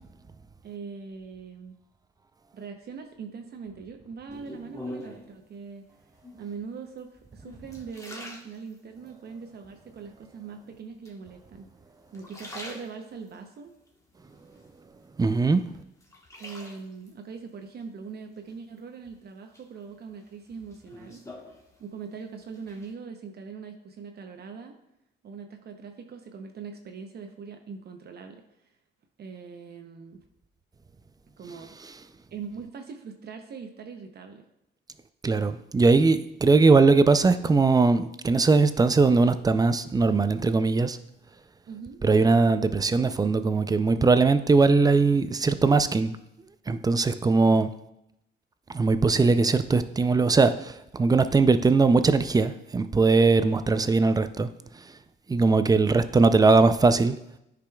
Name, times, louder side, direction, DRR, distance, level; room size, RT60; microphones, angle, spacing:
voice 1, 0.6-1.8 2.5-5.8 6.4-11.7 12.1-13.7 16.4-21.2 21.8-24.8 25.2-28.4 29.2-30.2 31.4-31.8 32.3-34.5 41.7-42.0, right 5 dB, 55° right, 5 dB, 0.7 m, -41 dB
sound 1, 4.3-5.4 6.1-6.6 7.2-9.1 9.6-10.2 11.1-11.7 12.1-13.4 13.9-15.1 15.5-17.1 18.5-19.1 19.5-22.2 22.4-22.9, left 1 dB, 15° left, 1.2 m, -45 dB
voice 2, 15.2-15.6 35.2-41.0 42.0-46.2 46.7-47.7 48.7-54.5 54.7-54.8 55.3-57.2, right 3 dB, 20° right, 11 dB, 0.4 m, -20 dB
10.0 x 5.0 x 2.3 m, 0.83 s
cardioid pair, 90°, 20 cm